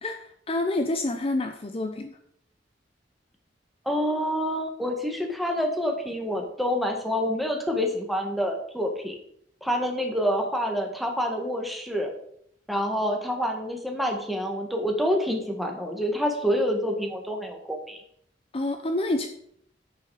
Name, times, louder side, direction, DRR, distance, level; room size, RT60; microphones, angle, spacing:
voice 1, 0.0-2.2 18.5-19.3, left 2 dB, 35° left, 6 dB, 0.6 m, -28 dB
voice 2, 3.8-9.1 9.6-12.1 12.7-18.0, equal, ahead, 2 dB, 1.6 m, -27 dB
9.3 x 6.9 x 4.9 m, 0.69 s
head